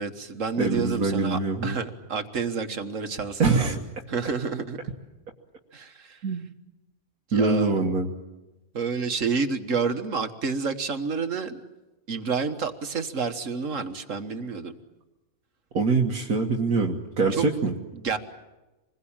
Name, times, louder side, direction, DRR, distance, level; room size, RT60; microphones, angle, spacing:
voice 1, 0.0-3.8 4.1-4.8 5.7-6.2 7.3-7.8 8.7-11.6 12.1-14.8 17.3-17.5 17.9-18.2, right 5 dB, 60° right, 8 dB, 1.8 m, -29 dB
voice 2, 0.6-1.8 3.4-3.8 6.2-6.5 7.3-8.1 15.7-17.7, right 4 dB, 85° right, 0 dB, 2.0 m, -24 dB
26.5 x 21.0 x 8.8 m, 1.1 s
omnidirectional pair, 1.5 m